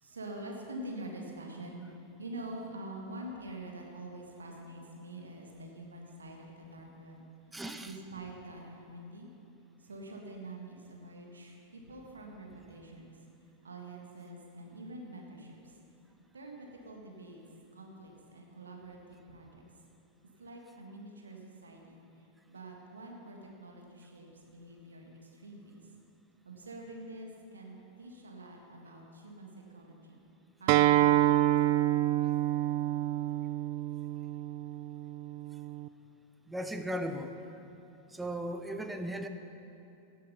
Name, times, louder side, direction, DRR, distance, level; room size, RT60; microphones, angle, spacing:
voice 1, 0.0-1.9 2.2-7.2 7.8-9.3 9.8-13.2 13.6-15.6 16.3-17.4 17.7-19.6 20.4-22.0 22.5-25.8 26.5-30.2 30.6-31.7, right 1 dB, 75° right, 1 dB, 1.8 m, -46 dB
voice 2, 7.5-7.9 36.5-37.3 38.1-39.3, right 1 dB, 5° right, 7 dB, 0.8 m, -36 dB
Acoustic guitar, 30.7-35.9, right 14 dB, 45° right, 0.3 m, -27 dB
16.5 x 7.5 x 5.7 m, 2.8 s
figure-of-eight pair, 90°, 0 cm